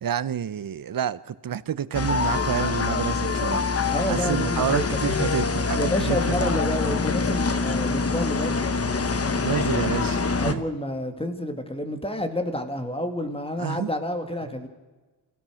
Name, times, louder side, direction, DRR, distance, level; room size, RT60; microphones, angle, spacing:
voice 1, 0.0-3.6 4.1-6.5 9.4-10.6 13.6-13.9, right 8 dB, 55° right, 0.7 m, -29 dB
sound 1, 1.9-10.5, left 4 dB, 35° left, 1.1 m, -25 dB
voice 2, 3.9-5.0 5.7-8.6 10.4-14.7, left 1 dB, 15° left, 2.3 m, -29 dB
27.0 x 16.0 x 6.3 m
wide cardioid pair, 110°, 40 cm